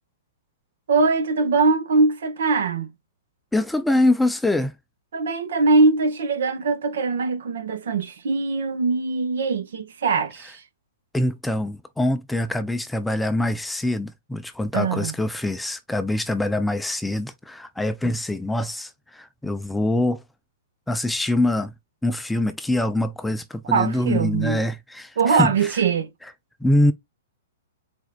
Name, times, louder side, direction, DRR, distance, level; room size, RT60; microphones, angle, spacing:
voice 1, 0.9-2.9 5.1-10.6 14.7-15.1 23.6-24.6 25.2-26.1, right 4 dB, 75° right, 1.4 m, -22 dB
voice 2, 3.5-4.7 11.1-20.2 20.9-21.7 22.0-25.7 26.6-26.9, left 1 dB, 5° left, 0.4 m, -24 dB
4.5 x 4.3 x 2.3 m
hypercardioid pair, 145°, 0 cm